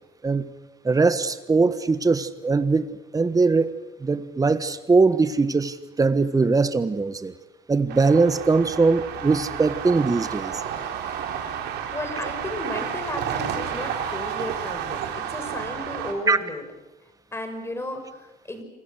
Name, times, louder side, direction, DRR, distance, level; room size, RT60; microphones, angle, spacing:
voice 1, 0.8-2.8 3.1-3.7 4.0-7.3 7.7-10.5 16.3-16.4, right 4 dB, 20° right, 12 dB, 1.4 m, -21 dB
sound 1, 7.9-16.1, right 8 dB, 80° right, 3.9 m, -31 dB
voice 2, 11.9-16.6 17.3-18.6, left 1 dB, 15° left, 7 dB, 5.6 m, -34 dB
28.0 x 25.0 x 6.5 m, 1.1 s
cardioid pair, 110°, 17 cm